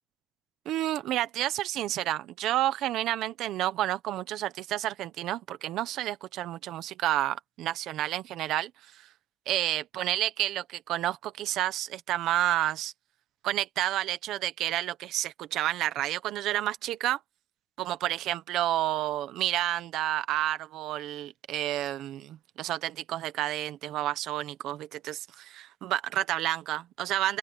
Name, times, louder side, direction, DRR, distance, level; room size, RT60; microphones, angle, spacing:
voice 1, 0.6-9.0 9.5-12.9 13.4-17.2 17.8-27.4, right 13 dB, 80° right, 1.2 m, -30 dB
open air
cardioid pair, 180°, 0 cm